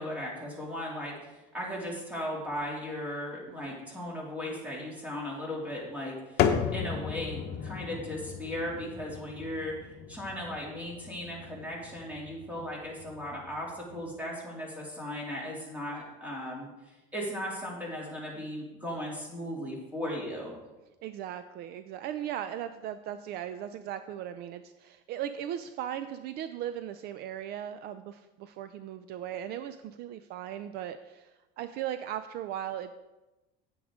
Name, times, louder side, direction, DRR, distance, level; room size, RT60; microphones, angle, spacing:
voice 1, 0.0-9.8 10.1-20.5, left 1 dB, 10° right, -3 dB, 2.6 m, -37 dB
sound 1, 6.4-14.1, left 8 dB, 60° left, 0.9 m, -35 dB
voice 2, 21.0-33.0, right 10 dB, 55° right, 11 dB, 0.5 m, -38 dB
9.5 x 8.7 x 3.7 m, 1.1 s
cardioid pair, 145°, 19 cm